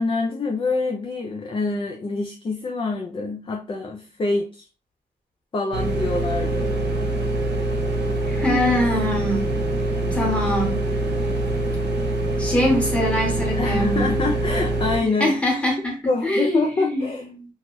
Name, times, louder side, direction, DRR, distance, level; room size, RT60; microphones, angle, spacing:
voice 1, 0.0-4.7 5.5-6.8 10.1-10.4 13.5-15.4 16.1-17.3, left 3 dB, 30° left, 1 dB, 0.4 m, -26 dB
sound 1, 5.7-15.0, right 2 dB, 85° right, 1.0 m, -24 dB
voice 2, 8.2-9.6 10.1-10.8 12.4-14.1 15.2-16.0 16.2-17.1 17.3-17.4, left 1 dB, 5° left, -1 dB, 1.1 m, -23 dB
2.9 x 2.3 x 3.0 m, 0.34 s
wide cardioid pair, 125°, 17 cm